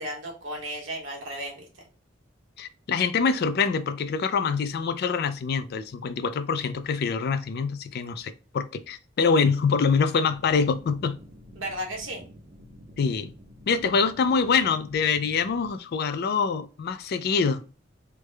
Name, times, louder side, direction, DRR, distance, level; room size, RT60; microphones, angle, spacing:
voice 1, 0.0-1.7 11.6-12.2, right 1 dB, 75° right, 1.2 m, -34 dB
voice 2, 2.6-11.2 13.0-13.3 13.7-17.6, left 5 dB, 55° left, 0.4 m, -25 dB
sound 1, 10.2-15.7, equal, 40° right, 0.6 m, -49 dB
3.3 x 2.1 x 3.3 m
head